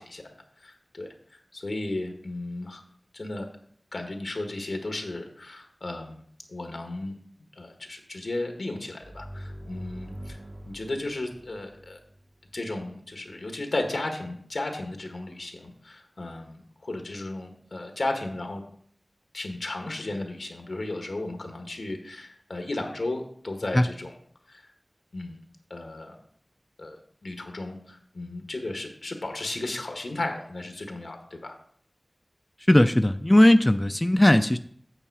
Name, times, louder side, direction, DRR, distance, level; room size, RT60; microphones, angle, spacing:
voice 1, 0.0-2.8 3.1-3.5 3.9-6.2 6.5-7.1 7.5-10.4 10.6-12.0 12.5-18.6 19.3-24.1 24.5-24.7 25.1-25.4 25.7-26.2 26.8-27.0 27.2-31.5, left 2 dB, 85° left, 4 dB, 1.5 m, -34 dB
sound 1, 9.0-12.6, equal, 75° right, 1.6 m, -43 dB
voice 2, 32.7-34.6, left 1 dB, 25° left, 9 dB, 0.4 m, -18 dB
8.9 x 6.8 x 4.7 m, 0.62 s
wide cardioid pair, 40°, 0 cm